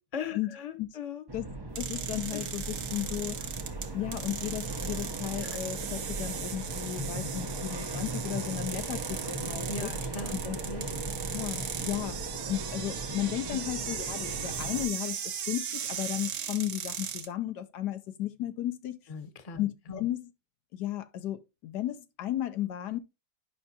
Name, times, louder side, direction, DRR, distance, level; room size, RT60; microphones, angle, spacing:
voice 1, 0.0-1.2 2.3-2.5 5.4-5.6 9.1-9.3 9.7-10.4 10.6-10.8 11.3-11.4 13.5-13.6 19.1-19.6 19.9-20.0, left 5 dB, 25° left, 0.9 m, -39 dB
sound 1, 1.3-14.9, right 2 dB, 30° right, 0.4 m, -38 dB
voice 2, 1.8-3.4 3.9-9.9 10.4-10.6 11.3-12.2 12.5-15.2 15.5-19.0 19.6-20.3 20.7-23.0, left 12 dB, 75° left, 1.2 m, -34 dB
sound 2, 1.8-17.3, right 8 dB, 65° right, 1.4 m, -38 dB
10.0 x 5.6 x 2.7 m
omnidirectional pair, 1.8 m